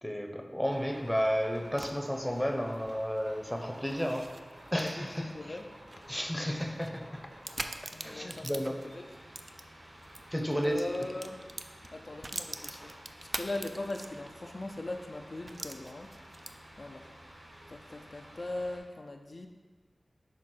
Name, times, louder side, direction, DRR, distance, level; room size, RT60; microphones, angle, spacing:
voice 1, 0.0-4.3 4.7-5.5 6.1-7.2 8.0-8.8 10.3-10.8, equal, 5° left, 3 dB, 0.7 m, -32 dB
sound 1, 0.7-18.8, equal, 70° right, 1.5 m, -52 dB
sound 2, 1.0-10.2 10.6-14.5 14.8-14.9 15.5-16.8, right 2 dB, 45° right, 0.3 m, -44 dB
voice 2, 4.8-6.0 7.9-9.1 10.6-11.4 11.9-13.0 13.2-16.2 16.8-17.1 17.7-19.5, left 2 dB, 55° left, 3 dB, 0.4 m, -40 dB
6.2 x 3.6 x 4.4 m, 1.4 s
wide cardioid pair, 50°, 0 cm